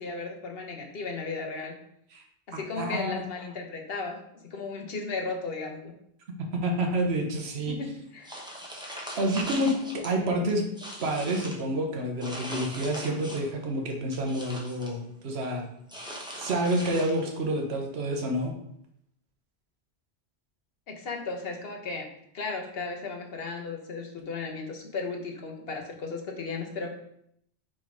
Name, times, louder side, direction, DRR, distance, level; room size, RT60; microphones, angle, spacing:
voice 1, 0.0-1.8 2.5-5.9 7.7-8.4 20.9-22.1 22.3-27.0, left 4 dB, 60° left, 3 dB, 1.2 m, -35 dB
voice 2, 2.8-3.2 6.5-7.7 9.2-10.6 11.0-15.6 16.3-18.5, right 1 dB, 70° right, 2 dB, 1.3 m, -28 dB
sound 1, 8.2-10.1 10.5-11.6 12.2-13.6 13.9-15.0 15.9-17.4, equal, 5° right, 0.9 m, -40 dB
6.1 x 3.6 x 5.0 m, 0.73 s
omnidirectional pair, 1.1 m